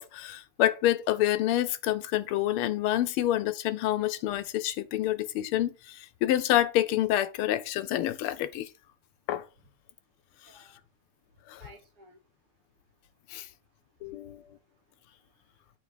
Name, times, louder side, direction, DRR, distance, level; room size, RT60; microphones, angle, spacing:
voice 1, 0.0-8.7 9.3-9.4 11.5-11.6 13.3-13.5 14.0-14.4, left 13 dB, 80° left, 1.5 m, -27 dB
voice 2, 10.3-10.8 11.5-12.3 13.0-13.6 14.0-15.7, equal, 85° right, 2.4 m, -59 dB
7.7 x 3.3 x 4.9 m
omnidirectional pair, 2.4 m